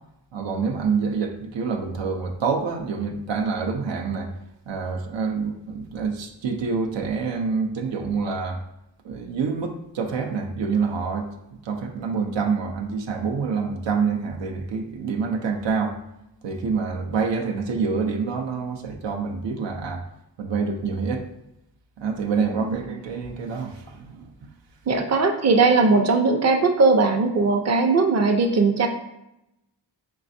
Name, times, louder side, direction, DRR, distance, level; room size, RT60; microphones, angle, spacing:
voice 1, 0.3-4.3 4.7-8.6 9.0-11.3 11.6-16.0 16.4-20.0 20.4-21.3 22.0-24.5, right 5 dB, 85° right, 2 dB, 0.6 m, -27 dB
voice 2, 24.9-28.9, right 3 dB, 40° right, 5 dB, 0.5 m, -19 dB
4.6 x 3.2 x 2.6 m, 0.86 s
cardioid pair, 55°, 43 cm